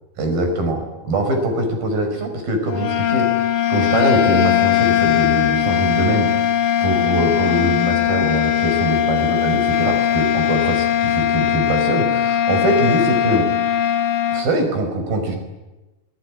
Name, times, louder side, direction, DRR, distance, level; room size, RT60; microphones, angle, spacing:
voice 1, 0.2-3.3 3.7-6.3 6.8-13.5 14.3-15.4, right 1 dB, 60° right, 6 dB, 6.5 m, -22 dB
sound 1, 2.7-14.5, left 11 dB, 60° left, 2.2 m, -19 dB
26.5 x 22.0 x 9.6 m, 1.1 s
omnidirectional pair, 4.8 m